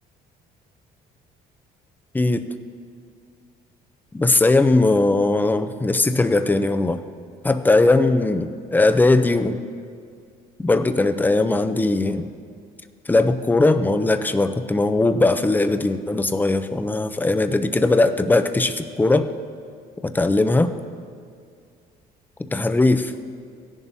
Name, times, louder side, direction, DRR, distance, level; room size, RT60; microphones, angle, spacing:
voice 1, 4.1-7.0 7.4-9.6 10.6-12.3 13.1-19.3 20.1-20.7 22.5-23.1, left 2 dB, 10° left, 9 dB, 0.5 m, -19 dB
17.0 x 11.0 x 2.7 m, 2.3 s
cardioid pair, 110°, 17 cm